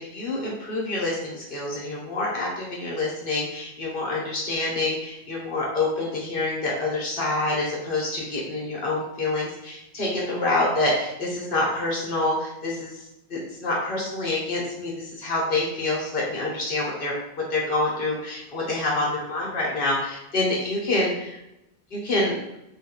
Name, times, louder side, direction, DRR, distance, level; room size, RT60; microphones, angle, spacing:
voice 1, 0.0-13.0 13.3-21.4 21.9-22.4, left 2 dB, 55° left, -4 dB, 1.1 m, -27 dB
3.7 x 2.3 x 2.9 m, 0.86 s
omnidirectional pair, 1.1 m